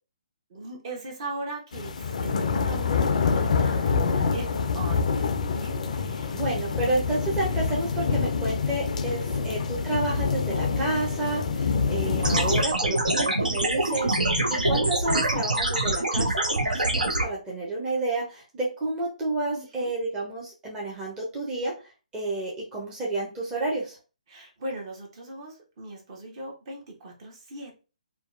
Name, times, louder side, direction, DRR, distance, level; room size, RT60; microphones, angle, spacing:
voice 1, 0.5-6.8 9.1-9.5 11.6-12.0 16.6-16.9 19.5-19.9 24.3-27.8, right 2 dB, 40° right, 0 dB, 0.9 m, -40 dB
sound 1, 1.7-12.6, left 5 dB, 60° left, 0.3 m, -26 dB
voice 2, 6.3-24.0, right 2 dB, 15° right, -4 dB, 0.7 m, -30 dB
sound 2, 12.2-17.2, right 1 dB, 85° right, 0.7 m, -24 dB
2.7 x 2.2 x 2.4 m, 0.33 s
figure-of-eight pair, 135°, 4 cm